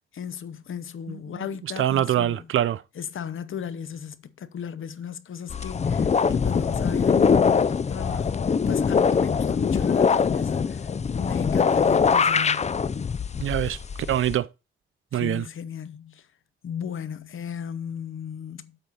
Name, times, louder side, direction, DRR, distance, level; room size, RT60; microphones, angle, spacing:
voice 1, 0.1-2.5 2.9-10.9 11.2-12.8 15.1-16.3 16.6-18.8, left 7 dB, 75° left, 0.8 m, -35 dB
voice 2, 1.8-2.8 13.4-13.8 14.1-14.5 15.1-15.4, right 11 dB, 80° right, 0.5 m, -24 dB
sound 1, 5.5-14.4, left 6 dB, 35° left, 0.4 m, -23 dB
8.0 x 4.4 x 5.4 m
wide cardioid pair, 105°, 21 cm